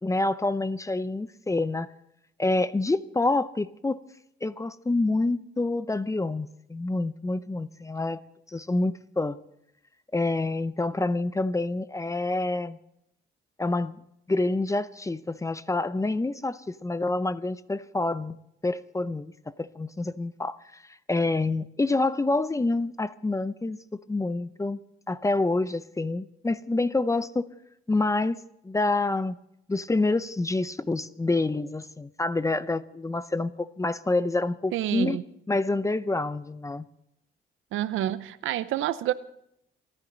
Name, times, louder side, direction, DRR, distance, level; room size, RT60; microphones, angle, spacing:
voice 1, 0.0-1.9 2.4-4.0 4.4-8.2 8.5-9.4 10.1-12.8 13.6-14.0 14.3-18.4 18.6-23.8 24.1-24.8 25.1-27.5 27.9-28.4 28.6-29.4 29.7-35.2 35.5-36.9, left 2 dB, 15° left, 0.6 m, -27 dB
voice 2, 34.7-35.2 37.7-39.1, right 13 dB, 85° right, 0.7 m, -28 dB
29.5 x 10.5 x 4.0 m
cardioid pair, 90°, 20 cm